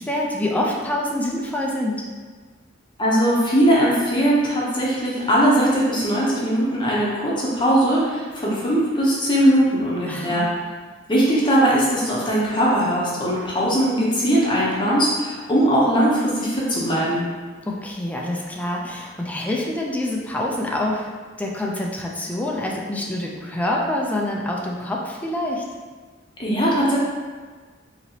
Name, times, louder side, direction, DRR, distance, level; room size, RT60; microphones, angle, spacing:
voice 1, 0.0-2.1 10.1-10.5 17.7-21.1 21.4-25.6, left 1 dB, 10° left, -2 dB, 0.4 m, -26 dB
voice 2, 3.0-10.4 11.1-17.2 26.4-27.0, equal, 25° left, -6 dB, 0.8 m, -20 dB
4.3 x 2.9 x 2.8 m, 1.4 s
head